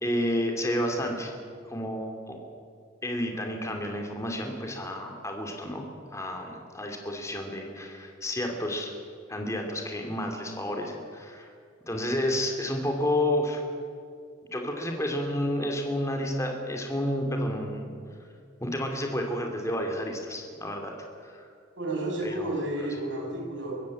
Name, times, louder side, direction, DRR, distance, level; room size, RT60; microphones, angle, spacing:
voice 1, 0.0-1.3 1.6-2.4 3.0-5.9 6.1-8.9 9.3-11.5 11.9-13.6 14.5-17.9 18.6-20.9 21.2-21.5 22.2-22.6, left 1 dB, 15° left, 3 dB, 2.7 m, -30 dB
voice 2, 21.8-23.8, right 1 dB, 70° right, -1 dB, 6.5 m, -31 dB
24.0 x 14.5 x 8.6 m, 2.3 s
head